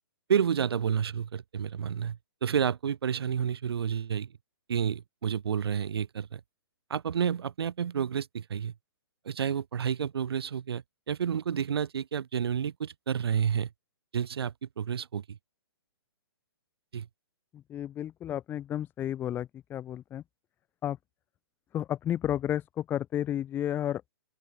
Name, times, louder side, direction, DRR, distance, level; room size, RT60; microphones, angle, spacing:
voice 1, 0.3-4.3 4.7-6.4 6.9-8.7 9.3-13.7 14.1-15.4 16.9-17.1, right 8 dB, 75° right, 1.7 m, -30 dB
voice 2, 17.5-20.2 20.8-21.0 21.7-24.1, left 11 dB, 15° left, 1.2 m, -32 dB
open air
hypercardioid pair, 150°, 13 cm